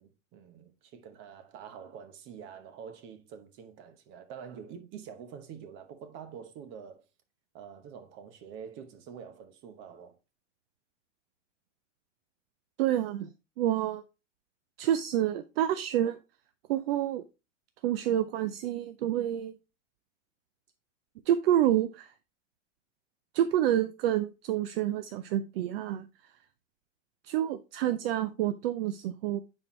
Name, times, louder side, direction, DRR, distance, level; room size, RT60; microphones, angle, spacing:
voice 1, 0.0-7.0 7.5-10.2, right 7 dB, 30° right, 1.0 m, -46 dB
voice 2, 12.8-13.3 13.6-14.0 14.8-16.2 16.7-17.2 17.8-19.5 21.3-22.1 23.3-26.1 27.2-29.4, right 11 dB, 55° right, 0.5 m, -28 dB
9.4 x 4.5 x 3.1 m
supercardioid pair, 155°, 37 cm